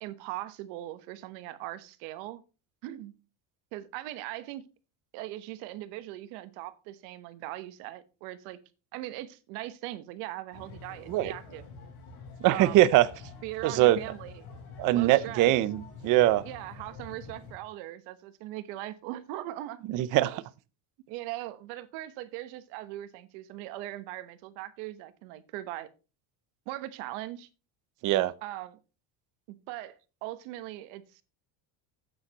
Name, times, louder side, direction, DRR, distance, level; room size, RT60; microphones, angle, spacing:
voice 1, 0.0-2.4 2.8-3.1 3.7-4.6 5.1-8.6 8.9-11.6 12.5-12.8 13.4-14.4 14.9-15.5 16.4-20.4 21.1-25.9 26.7-27.5 28.4-28.8 29.5-31.2, right 15 dB, 90° right, 1.3 m, -40 dB
sound 1, 10.5-17.5, left 4 dB, 75° left, 5.1 m, -47 dB
voice 2, 12.4-13.1 13.6-14.0 14.8-16.4 19.9-20.4 28.0-28.3, right 15 dB, 40° right, 0.6 m, -22 dB
12.5 x 8.6 x 2.9 m
cardioid pair, 175°, 47 cm